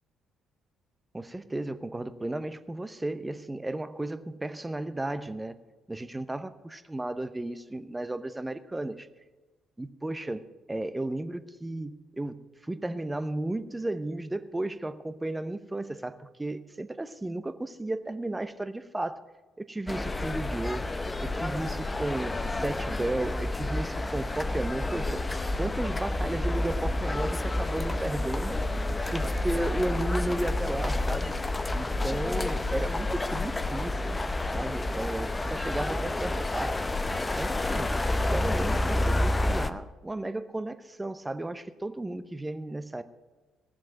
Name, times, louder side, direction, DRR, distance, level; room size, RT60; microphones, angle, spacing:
voice 1, 1.1-5.5 5.9-9.1 9.8-19.2 19.6-20.9 21.2-25.2 25.6-28.6 29.1-31.4 31.7-34.1 34.5-36.9 37.3-37.9 38.3-43.0, right 1 dB, 15° right, 12 dB, 0.8 m, -34 dB
sound 1, 19.9-39.7, left 2 dB, 20° left, 0.7 m, -29 dB
17.5 x 7.4 x 5.9 m, 1.3 s
figure-of-eight pair, 45°, 0 cm